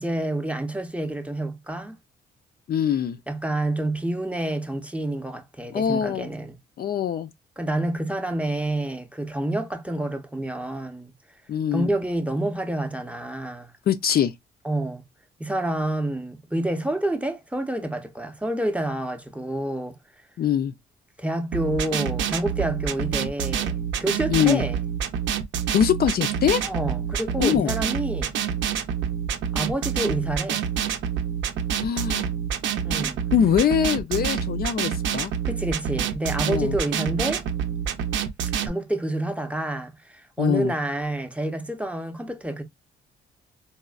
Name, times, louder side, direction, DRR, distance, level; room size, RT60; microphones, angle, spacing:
voice 1, 0.0-2.0 3.3-6.5 7.6-11.1 11.7-13.7 14.6-15.0 15.4-20.0 21.2-24.8 26.6-28.3 29.5-30.6 32.8-33.2 35.4-37.5 38.6-42.6, right 1 dB, 5° right, 0.6 m, -28 dB
voice 2, 2.7-3.2 5.7-6.3 6.8-7.3 11.5-11.9 13.9-14.3 20.4-20.7 24.3-24.6 25.7-26.6 27.4-27.8 31.8-32.2 33.3-35.3 36.5-36.7 40.4-40.7, left 9 dB, 50° left, 0.4 m, -23 dB
sound 1, 21.5-38.7, right 8 dB, 70° right, 0.6 m, -27 dB
4.1 x 2.0 x 2.3 m
cardioid pair, 90°, 20 cm